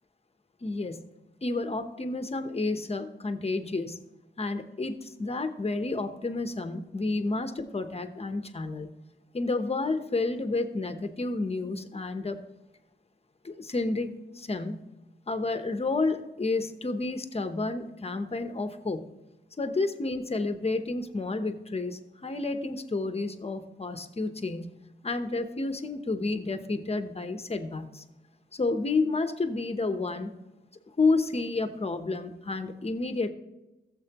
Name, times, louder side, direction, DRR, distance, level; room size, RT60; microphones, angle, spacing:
voice 1, 0.6-1.0 1.4-4.0 4.4-8.9 9.3-12.4 13.4-14.8 15.3-19.1 19.6-24.7 25.0-28.0 28.5-30.3 31.0-33.3, left 3 dB, 30° left, 8 dB, 0.9 m, -30 dB
16.0 x 7.7 x 3.0 m, 1.0 s
wide cardioid pair, 140°, 20 cm